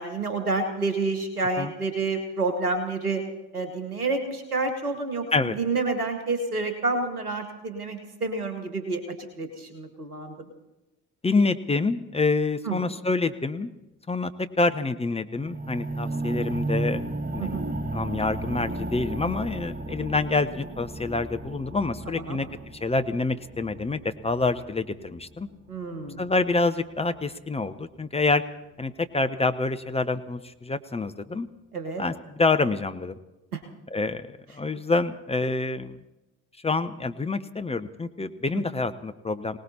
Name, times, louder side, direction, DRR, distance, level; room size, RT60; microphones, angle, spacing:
voice 1, 0.0-3.2 3.5-9.0 9.4-10.3 12.6-12.8 17.4-17.6 22.1-22.4 25.7-26.2 31.7-32.0 33.5-33.6, right 3 dB, 85° right, 7 dB, 1.3 m, -29 dB
voice 2, 11.2-13.7 14.1-14.3 14.6-17.0 17.3-17.5 17.9-22.5 22.7-25.5 26.2-28.4 28.8-31.5 32.0-33.1 33.9-36.0 36.6-39.6, left 3 dB, 15° left, 9 dB, 0.7 m, -27 dB
sound 1, 15.4-25.5 26.1-26.2, right 2 dB, 20° right, 1.5 m, -33 dB
27.0 x 18.5 x 2.9 m, 1.0 s
figure-of-eight pair, 45°, 44 cm